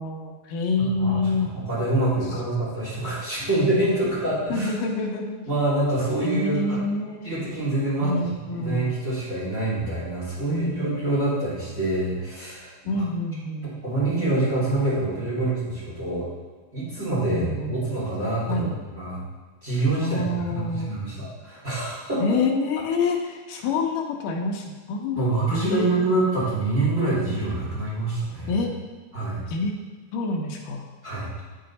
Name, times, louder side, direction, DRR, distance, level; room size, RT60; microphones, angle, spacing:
voice 1, 0.0-1.5 3.4-3.5 4.5-5.4 6.2-7.3 8.0-8.9 10.5-11.0 12.9-13.8 17.3-17.8 18.5-18.7 20.0-20.9 22.2-25.9 28.5-28.7 29.5-29.7 30.1-30.8, left 3 dB, 75° left, 1 dB, 2.2 m, -27 dB
voice 2, 1.0-4.7 5.5-6.8 7.2-13.0 13.6-16.3 16.7-19.2 19.6-22.4 25.2-28.5 29.1-29.4 31.0-31.3, right 2 dB, 20° right, -9 dB, 2.6 m, -26 dB
8.5 x 6.6 x 4.1 m, 1.4 s
omnidirectional pair, 4.4 m